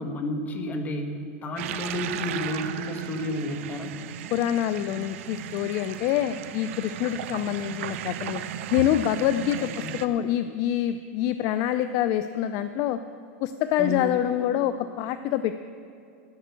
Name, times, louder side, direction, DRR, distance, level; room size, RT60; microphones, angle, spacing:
voice 1, 0.0-3.9 9.6-9.9 13.8-14.2, left 1 dB, 25° left, 5 dB, 1.3 m, -31 dB
sound 1, 1.6-10.1, right 10 dB, 65° right, 0.6 m, -36 dB
voice 2, 4.3-8.4 8.7-13.0 13.4-15.6, left 11 dB, 45° left, 11 dB, 0.4 m, -26 dB
10.5 x 8.4 x 8.3 m, 2.4 s
supercardioid pair, 140°, 7 cm